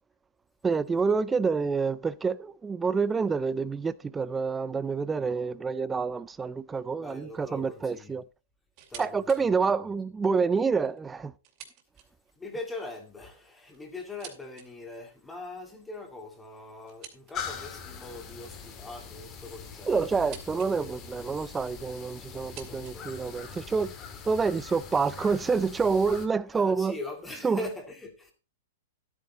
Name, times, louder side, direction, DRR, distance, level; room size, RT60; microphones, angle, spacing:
voice 1, 0.6-8.2 9.0-11.3 19.9-23.9 24.3-27.0 27.4-27.6, right 5 dB, 10° right, 0.5 m, -27 dB
voice 2, 7.0-8.1 8.9-9.8 12.4-20.4 20.7-21.1 22.3-23.2 26.5-28.3, left 2 dB, 10° left, 2.2 m, -42 dB
sound 1, 8.7-9.4 9.8-9.9 10.7-12.4 13.3-14.7 16.9-17.7 18.9-20.7 21.0-21.6 22.3-23.7, right 10 dB, 35° right, 2.5 m, -50 dB
sound 2, 17.3-26.3, left 6 dB, 25° left, 1.9 m, -42 dB
12.5 x 8.9 x 4.0 m
hypercardioid pair, 155°, 0 cm